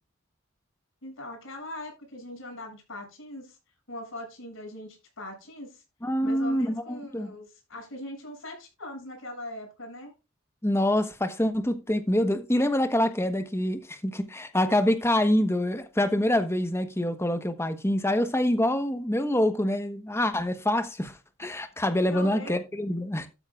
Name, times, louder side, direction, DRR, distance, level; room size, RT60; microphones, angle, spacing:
voice 1, 1.0-3.6 3.9-5.8 6.2-10.1 22.1-22.6, left 1 dB, 70° left, 7.2 m, -41 dB
voice 2, 6.0-7.3 10.6-23.3, left 1 dB, 10° left, 1.1 m, -26 dB
13.5 x 9.1 x 2.4 m
head